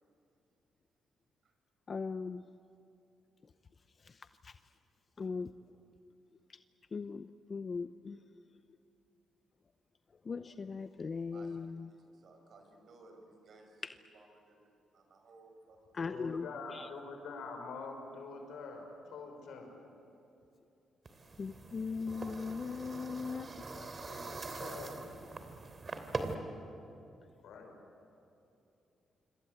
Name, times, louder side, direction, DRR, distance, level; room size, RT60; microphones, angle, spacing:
voice 1, 1.9-2.4 4.4-4.5 5.2-5.5 6.9-8.2 10.3-11.9 13.8-14.0 15.9-16.9 21.4-23.7, left 4 dB, 40° left, 10 dB, 0.7 m, -39 dB
voice 2, 11.3-11.6 12.0-16.3, right 2 dB, 60° right, 4 dB, 5.8 m, -60 dB
voice 3, 16.0-19.7 23.7-25.0 27.4-27.8, left 4 dB, 80° left, 3 dB, 5.8 m, -45 dB
sound 1, 21.1-26.3, right 3 dB, 40° right, 3.0 m, -43 dB
27.0 x 25.5 x 8.0 m, 2.8 s
cardioid pair, 75°, 0 cm